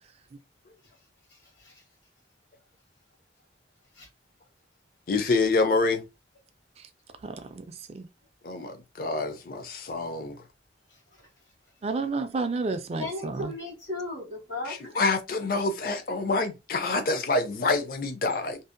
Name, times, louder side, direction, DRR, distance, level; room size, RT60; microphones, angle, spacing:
voice 1, 5.1-6.0 8.4-10.4 14.7-18.6, left 3 dB, 55° left, 0.4 m, -27 dB
voice 2, 7.2-8.1 11.8-13.5, right 3 dB, 35° right, 0.3 m, -31 dB
voice 3, 13.0-14.9, left 2 dB, 85° left, 1.3 m, -36 dB
2.6 x 2.0 x 2.5 m
head